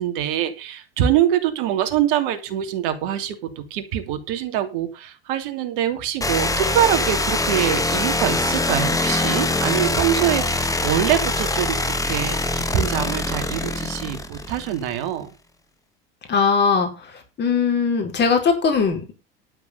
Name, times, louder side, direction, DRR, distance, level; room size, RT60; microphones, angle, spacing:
voice 1, 0.0-15.3, right 10 dB, 65° right, 8 dB, 2.8 m, -24 dB
sound 1, 6.2-14.9, left 2 dB, 10° left, 1.9 m, -23 dB
voice 2, 16.3-16.9 17.4-19.1, left 5 dB, 35° left, 4 dB, 4.8 m, -19 dB
12.0 x 6.2 x 6.8 m, 0.30 s
hypercardioid pair, 80°, 29 cm